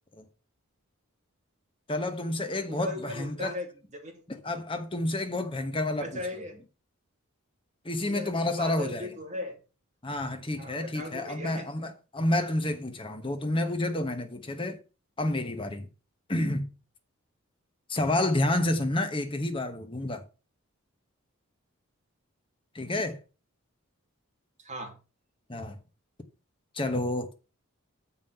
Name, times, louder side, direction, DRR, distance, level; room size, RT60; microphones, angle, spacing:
voice 1, 1.9-3.5 4.3-6.2 7.8-9.1 10.0-14.8 15.2-15.9 16.3-16.7 17.9-20.2 22.7-23.2 25.5-25.8 26.7-27.3, left 1 dB, 25° left, 1.1 m, -29 dB
voice 2, 2.7-3.7 4.0-4.1 6.0-6.6 8.0-9.6 10.6-11.7 24.6-25.0, left 1 dB, 30° right, 2.6 m, -38 dB
7.4 x 5.6 x 5.7 m
head